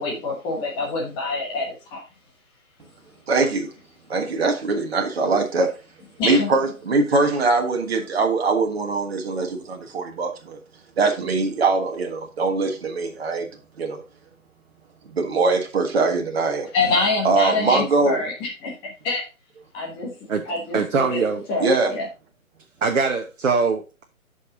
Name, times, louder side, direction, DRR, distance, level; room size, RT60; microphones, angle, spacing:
voice 1, 0.0-2.0 6.2-6.5 16.7-19.2 19.7-21.2 21.5-22.1, left 3 dB, 10° left, 1.4 m, -26 dB
voice 2, 3.3-3.7 4.1-5.7 6.2-10.6 11.0-13.5 13.8-14.0 15.1-16.7 17.2-18.2 21.6-21.9, right 3 dB, 45° right, 1.5 m, -22 dB
voice 3, 20.7-21.5 22.8-24.0, right 4 dB, 65° right, 1.1 m, -22 dB
8.2 x 5.6 x 3.8 m
figure-of-eight pair, 145°, 42 cm